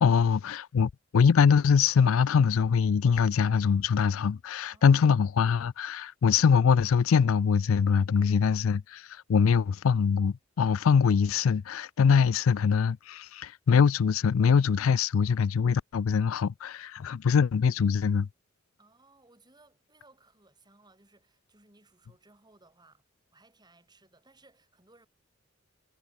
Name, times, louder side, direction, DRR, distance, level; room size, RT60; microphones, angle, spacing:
voice 1, 0.0-18.3, left 6 dB, 85° left, 0.4 m, -23 dB
voice 2, 8.2-8.8 18.8-23.0 23.3-25.1, right 2 dB, 20° right, 4.7 m, -61 dB
head